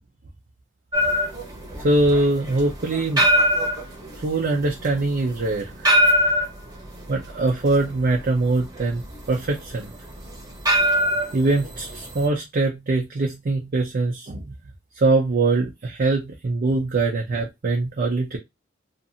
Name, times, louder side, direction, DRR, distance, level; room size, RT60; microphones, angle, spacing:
sound 1, 0.9-12.3, equal, 20° right, 0.9 m, -23 dB
voice 1, 1.8-3.3 4.2-5.9 7.1-9.9 11.3-14.5 15.0-18.4, right 2 dB, 45° right, 0 dB, 0.5 m, -23 dB
2.7 x 2.5 x 2.5 m, 0.20 s
head